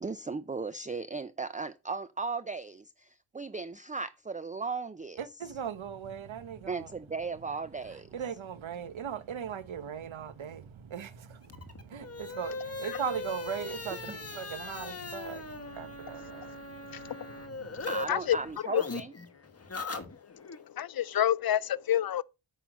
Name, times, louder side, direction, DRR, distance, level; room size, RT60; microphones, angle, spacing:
voice 1, 0.0-5.2 6.7-8.1 16.3-16.4 17.9-19.1, right 4 dB, 15° right, 0.5 m, -36 dB
voice 2, 5.2-6.9 7.8-17.9, right 8 dB, 85° right, 1.2 m, -39 dB
sound 1, 11.4-18.0 18.3-20.6, left 3 dB, 30° left, 1.4 m, -40 dB
voice 3, 20.4-22.2, left 11 dB, 50° left, 0.6 m, -28 dB
8.9 x 5.6 x 6.3 m
wide cardioid pair, 110°, 46 cm